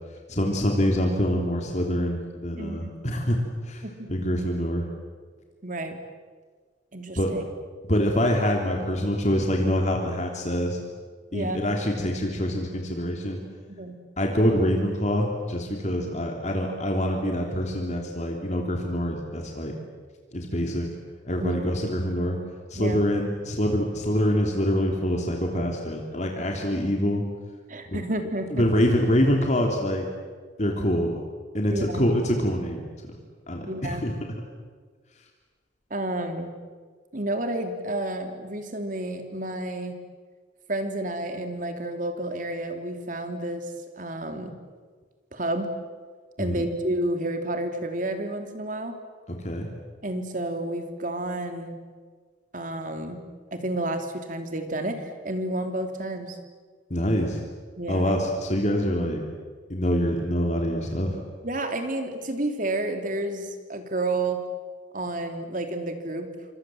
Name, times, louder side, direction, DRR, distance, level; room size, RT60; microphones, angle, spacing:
voice 1, 0.3-3.8 4.1-4.8 7.2-7.3 7.9-10.8 11.3-13.4 14.2-19.7 20.3-20.9 21.2-22.4 22.7-27.2 27.9-28.0 28.5-30.1 30.6-31.1 31.5-32.9 33.5-34.1 46.4-46.5 49.4-49.7 56.9-57.4 57.9-59.2 59.7-61.2, equal, 40° left, 1 dB, 3.1 m, -25 dB
voice 2, 2.6-2.9 3.8-4.3 5.6-6.0 6.9-7.4 11.3-11.6 13.7-13.9 21.4-21.6 22.8-23.1 27.7-28.7 31.7-32.0 33.7-34.0 35.9-36.5 37.1-39.9 40.7-43.7 44.0-44.5 45.3-45.7 46.4-48.9 50.0-51.8 52.5-53.2 53.5-56.4 57.8-58.1 61.4-64.4 64.9-66.3, right 1 dB, 45° right, 6 dB, 3.1 m, -30 dB
27.5 x 25.5 x 7.8 m, 1.5 s
head